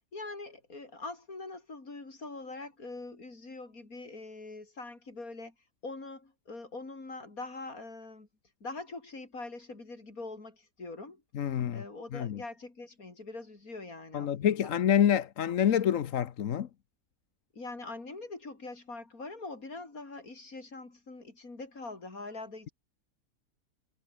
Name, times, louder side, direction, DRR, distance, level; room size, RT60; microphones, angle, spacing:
voice 1, 0.1-5.5 5.8-8.3 8.6-11.2 11.7-14.7 17.5-22.7, left 3 dB, 85° left, 4.8 m, -43 dB
voice 2, 11.3-11.8 12.1-12.4 14.1-16.7, left 9 dB, 70° left, 1.3 m, -27 dB
omnidirectional pair, 1.5 m